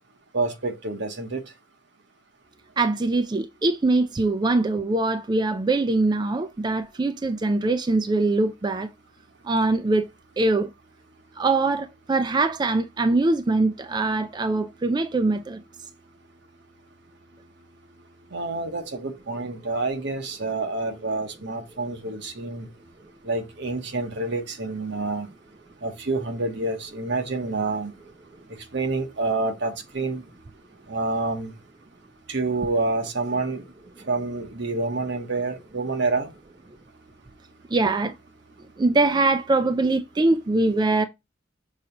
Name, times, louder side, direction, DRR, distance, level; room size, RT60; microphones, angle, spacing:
voice 1, 0.3-1.4 18.3-22.7 23.2-25.3 25.8-27.9 28.7-30.2 30.9-31.5 32.3-33.6 34.1-36.3, right 3 dB, 65° right, 1.1 m, -28 dB
voice 2, 2.8-8.9 9.5-10.0 10.4-10.7 11.4-15.6 37.7-38.1 38.8-41.1, right 2 dB, 25° right, 0.4 m, -22 dB
6.3 x 2.8 x 5.2 m
head